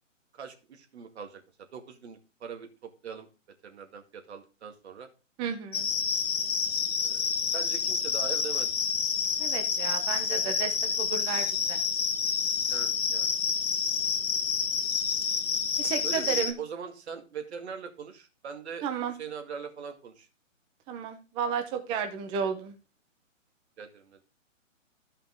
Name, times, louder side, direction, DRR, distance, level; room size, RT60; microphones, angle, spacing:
voice 1, 0.3-1.4 1.7-3.3 3.6-5.1 7.0-7.2 7.5-8.7 12.7-13.4 16.0-18.8 19.2-20.3 23.8-24.2, right 6 dB, 55° right, 5 dB, 2.1 m, -41 dB
voice 2, 5.4-5.9 9.4-11.8 15.8-16.5 18.8-19.1 20.9-22.7, right 7 dB, 15° right, 7 dB, 0.8 m, -33 dB
sound 1, 5.7-16.5, left 6 dB, 75° left, 1.3 m, -28 dB
12.5 x 5.6 x 3.7 m, 0.32 s
hypercardioid pair, 145°, 39 cm